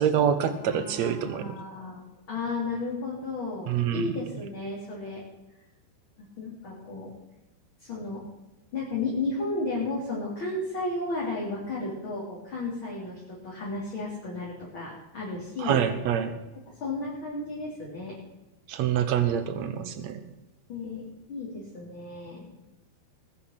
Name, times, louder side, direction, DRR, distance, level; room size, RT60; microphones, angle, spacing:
voice 1, 0.0-1.6 3.7-4.1 15.6-16.3 18.7-20.2, right 9 dB, 65° right, 10 dB, 1.8 m, -26 dB
voice 2, 0.6-5.2 6.4-7.1 7.8-8.2 8.7-15.8 16.8-18.2 19.8-19.9 20.7-22.5, left 3 dB, 30° left, -5 dB, 4.0 m, -33 dB
20.0 x 10.5 x 6.0 m, 1.0 s
omnidirectional pair, 4.6 m